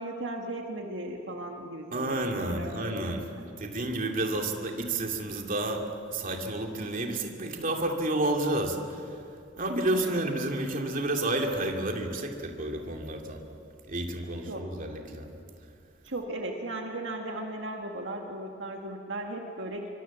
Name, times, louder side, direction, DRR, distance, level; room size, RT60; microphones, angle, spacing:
voice 1, 0.0-3.1 3.4-3.5 9.9-10.1 14.5-14.7 16.0-19.9, right 1 dB, 70° right, 2 dB, 2.0 m, -37 dB
voice 2, 1.9-3.3 3.6-5.8 6.1-9.2 9.6-13.4 13.9-15.3, right 1 dB, 45° right, 2 dB, 2.6 m, -30 dB
26.0 x 24.0 x 7.3 m, 2.5 s
head